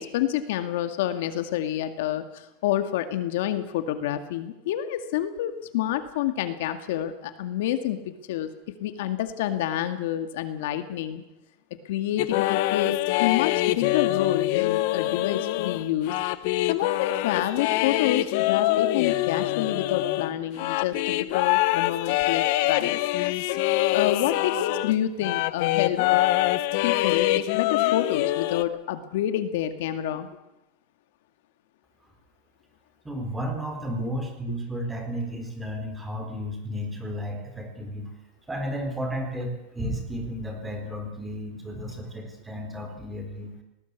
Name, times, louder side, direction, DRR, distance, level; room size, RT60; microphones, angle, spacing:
voice 1, 0.0-8.5 8.8-11.2 11.9-16.1 16.7-23.0 23.9-26.2 26.8-30.3, left 12 dB, 70° left, 8 dB, 2.0 m, -28 dB
sound 1, 12.2-25.0 25.2-28.6, left 16 dB, 55° left, 0.9 m, -24 dB
voice 2, 33.0-38.1 38.5-43.5, equal, 10° right, 4 dB, 4.1 m, -33 dB
19.0 x 19.0 x 8.3 m, 0.92 s
supercardioid pair, 160°, 0 cm